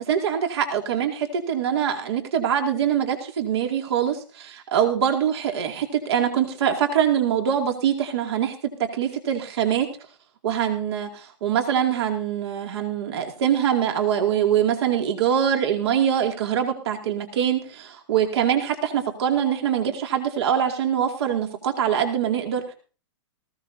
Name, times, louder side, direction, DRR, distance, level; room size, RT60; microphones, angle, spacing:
voice 1, 0.0-8.5 8.9-9.9 10.4-22.7, right 9 dB, 65° right, 4 dB, 2.4 m, -23 dB
19.0 x 15.5 x 2.7 m, 0.37 s
hypercardioid pair, 125°, 15 cm